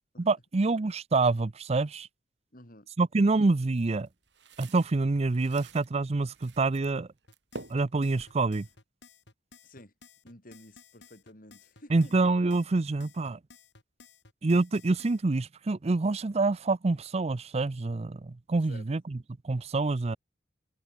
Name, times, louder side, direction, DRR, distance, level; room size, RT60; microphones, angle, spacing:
voice 1, 0.2-2.1 3.0-4.1 4.6-7.1 7.7-8.7 11.9-13.4 14.4-19.2 19.4-20.2, right 3 dB, 35° right, 0.5 m, -26 dB
voice 2, 2.5-2.9 9.6-9.9 10.2-12.1 18.7-18.9, left 1 dB, 50° left, 6.5 m, -51 dB
sound 1, 3.7-5.9 6.3-7.0 7.2-8.8, right 2 dB, 70° right, 7.1 m, -48 dB
sound 2, 7.3-15.2, left 4 dB, 70° left, 7.7 m, -56 dB
head